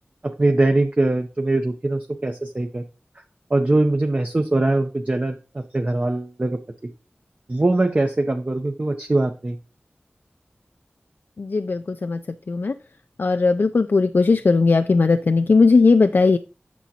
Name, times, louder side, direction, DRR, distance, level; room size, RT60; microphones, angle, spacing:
voice 1, 0.2-2.8 3.5-6.6 7.5-9.6, right 2 dB, 35° right, 4 dB, 0.6 m, -22 dB
voice 2, 11.4-12.2 12.5-12.7 13.2-16.4, left 4 dB, 65° left, 9 dB, 0.3 m, -18 dB
8.2 x 6.2 x 2.8 m, 0.33 s
wide cardioid pair, 70°, 4 cm